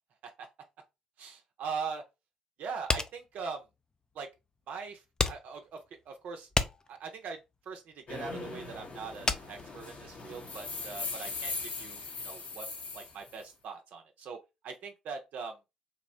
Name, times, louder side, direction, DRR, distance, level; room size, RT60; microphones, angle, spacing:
voice 1, 1.2-2.0 2.6-3.6 4.1-4.3 4.7-6.5 6.9-7.4 7.7-12.7 12.9-14.4 14.6-15.6, right 5 dB, 60° right, 0.5 m, -41 dB
sound 1, 2.9-10.5, left 3 dB, 25° left, 0.4 m, -34 dB
sound 2, 8.1-13.4, left 4 dB, 50° left, 0.7 m, -40 dB
2.9 x 2.0 x 2.6 m
hypercardioid pair, 45°, 3 cm